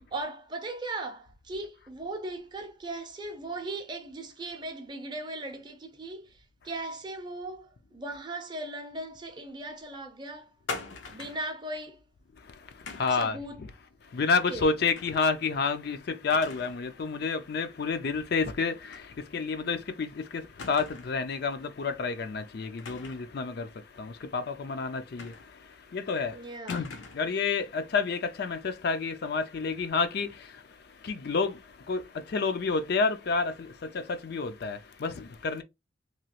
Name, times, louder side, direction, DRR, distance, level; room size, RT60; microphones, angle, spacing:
voice 1, 0.1-10.5 11.1-12.0 13.2-13.6 14.5-14.7 26.3-26.8, right 2 dB, 25° right, 0.5 m, -38 dB
sound 1, 10.7-11.5 12.9-13.3 14.9-15.3 15.6-15.7 16.3-16.8 17.2-17.3 18.9-19.1 19.4-19.5 20.6-21.2 22.8-23.3 25.2-25.7 26.7-27.3, left 4 dB, 90° left, 0.7 m, -41 dB
voice 2, 12.4-13.7 14.0-35.6, left 4 dB, 55° left, 0.4 m, -30 dB
3.0 x 2.3 x 2.9 m
head